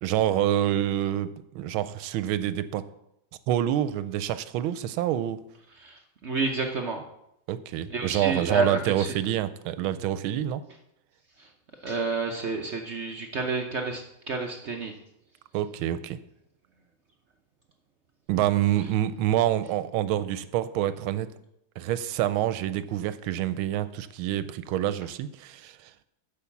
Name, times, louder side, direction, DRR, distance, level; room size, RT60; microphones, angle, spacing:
voice 1, 0.0-2.8 3.5-5.4 7.5-10.6 15.5-16.2 18.3-21.3 21.8-25.9, right 12 dB, 85° right, 14 dB, 1.4 m, -27 dB
voice 2, 5.7-7.0 7.9-9.1 11.4-11.5 11.8-14.9, right 3 dB, 60° right, 3 dB, 0.7 m, -30 dB
8.5 x 5.4 x 7.1 m, 0.81 s
omnidirectional pair, 2.2 m